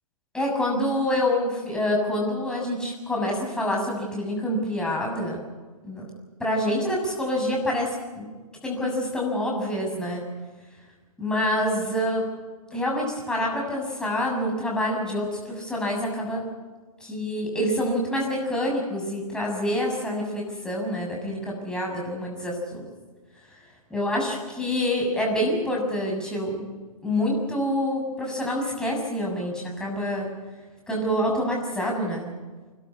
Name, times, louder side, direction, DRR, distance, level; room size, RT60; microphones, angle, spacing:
voice 1, 0.3-5.4 5.8-6.0 6.4-8.3 8.6-10.2 11.2-12.2 12.7-16.4 17.0-22.8 23.9-26.7 27.0-30.3 30.9-32.3, left 1 dB, 5° left, -2 dB, 6.8 m, -27 dB
30.0 x 12.5 x 9.8 m, 1.3 s
hypercardioid pair, 140°, 19 cm